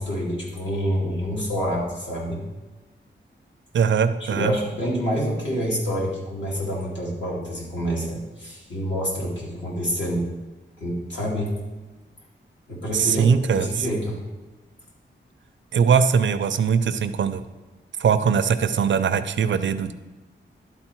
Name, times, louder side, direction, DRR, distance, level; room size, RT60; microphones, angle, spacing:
voice 1, 0.0-2.4 4.2-10.3 10.8-11.5 12.7-14.2, equal, 70° left, -4 dB, 2.5 m, -27 dB
voice 2, 3.7-4.5 12.9-13.8 15.7-17.4 18.0-19.9, right 6 dB, 70° right, 11 dB, 0.5 m, -21 dB
11.5 x 4.1 x 4.5 m, 1.2 s
wide cardioid pair, 165°, 20 cm